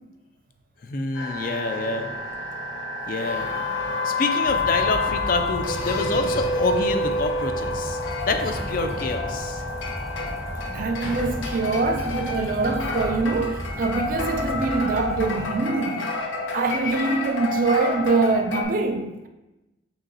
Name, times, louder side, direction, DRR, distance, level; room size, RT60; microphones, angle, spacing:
voice 1, 0.8-2.1 3.1-3.5 4.0-9.6, left 3 dB, 45° left, 0.4 m, -27 dB
sound 1, 1.1-18.6, left 2 dB, 90° left, 0.7 m, -29 dB
Sliding door, 2.2-2.3 2.9-12.1 12.4-13.2, left 2 dB, 65° left, 1.0 m, -43 dB
sound 2, 4.4-15.4, equal, 15° left, 0.7 m, -35 dB
voice 2, 10.7-16.1 16.5-19.3, right 3 dB, 45° right, 0.3 m, -24 dB
6.2 x 2.9 x 2.8 m
head